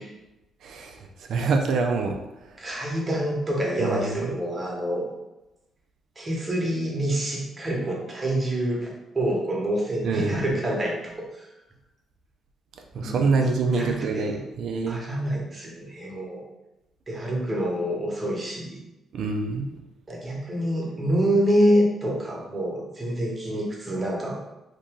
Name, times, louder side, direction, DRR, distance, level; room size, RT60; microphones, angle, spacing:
voice 1, 0.6-1.0 1.3-2.2 3.8-4.3 10.0-10.5 12.9-15.0 19.1-19.8, right 4 dB, 70° right, 3 dB, 0.4 m, -25 dB
voice 2, 2.6-5.1 6.2-11.5 12.9-14.4 14.9-16.4 17.1-18.8 20.1-24.4, equal, 25° right, -2 dB, 1.1 m, -27 dB
2.9 x 2.6 x 3.6 m, 0.97 s
cardioid pair, 90°, 0 cm